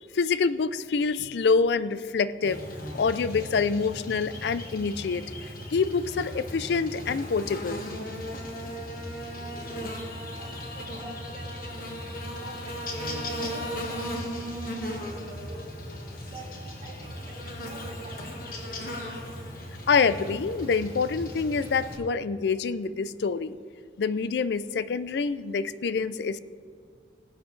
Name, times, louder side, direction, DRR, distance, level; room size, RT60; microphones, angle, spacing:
voice 1, 0.1-2.6 2.9-5.2 5.7-7.8 19.9-23.6 24.0-26.4, left 5 dB, 70° left, 15 dB, 0.4 m, -26 dB
Buzz, 2.4-22.0, equal, 50° left, 1.5 m, -37 dB
voice 2, 9.3-10.0 10.3-14.4 14.7-15.7 16.2-16.5 16.8-19.1, equal, 35° right, -8 dB, 2.8 m, -46 dB
18.0 x 8.1 x 3.2 m, 2.2 s
head